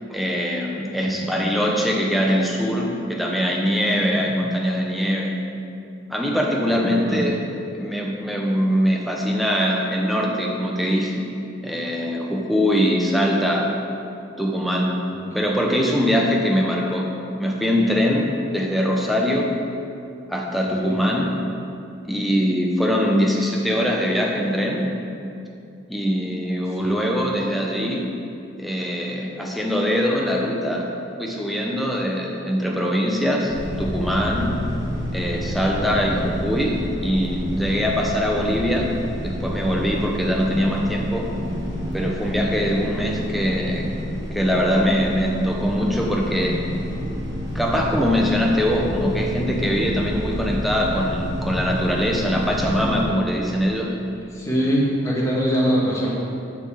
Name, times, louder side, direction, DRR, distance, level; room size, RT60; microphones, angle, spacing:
voice 1, 0.1-5.4 6.1-7.5 7.7-11.2 11.6-13.7 14.4-14.9 15.3-17.1 17.4-19.5 20.3-21.3 22.1-24.9 25.9-28.1 28.6-30.9 31.2-34.5 35.1-38.9 39.2-41.3 41.9-43.9 44.3-46.6 47.5-53.9, equal, ahead, -1 dB, 0.8 m, -22 dB
voice 2, 6.6-7.2 15.1-15.2 20.6-21.0 26.8-26.9 35.8-36.2 54.3-56.1, equal, 15° left, -6 dB, 1.7 m, -24 dB
sound 1, 33.5-53.0, equal, 55° right, 1.6 m, -29 dB
6.8 x 6.6 x 7.2 m, 2.6 s
head